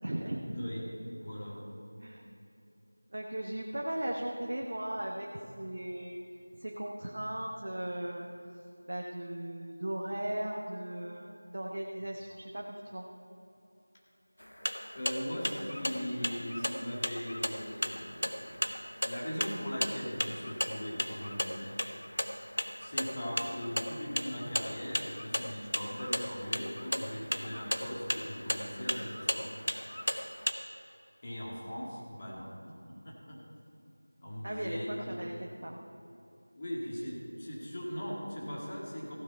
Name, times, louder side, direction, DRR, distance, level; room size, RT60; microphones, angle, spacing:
voice 1, 0.0-0.5 2.0-2.3 3.1-6.2 6.6-8.6 8.9-11.3 11.5-13.1 34.4-35.8, right 1 dB, 45° right, 0 dB, 1.0 m, -37 dB
voice 2, 0.5-1.6 14.9-18.7 19.0-21.8 22.8-29.5 31.2-32.5 32.9-33.4 34.2-35.1 36.6-39.1, equal, 25° left, -4 dB, 2.1 m, -39 dB
sound 1, 14.4-30.5, equal, 75° left, 1.0 m, -36 dB
15.0 x 9.9 x 4.4 m, 2.8 s
figure-of-eight pair, 175°, 0 cm